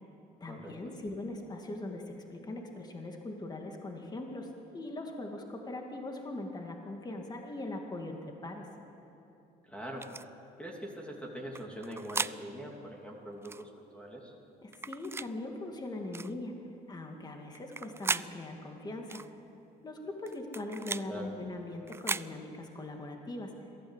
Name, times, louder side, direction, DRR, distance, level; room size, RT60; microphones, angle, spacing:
voice 1, 0.4-8.7 14.6-16.5 16.9-19.2 19.8-23.5, left 2 dB, 25° left, 2 dB, 2.3 m, -41 dB
voice 2, 9.6-10.1 10.6-14.3 21.0-21.3, equal, 5° left, -1 dB, 2.9 m, -43 dB
sound 1, 10.0-10.2 11.5-12.4 13.4-13.6 14.7-15.3 16.1-16.3 17.5-18.3 19.1-19.3 20.3-21.1 21.9-22.3, right 4 dB, 15° right, 0.4 m, -36 dB
23.0 x 15.0 x 8.2 m, 2.8 s
cardioid pair, 110°, 17 cm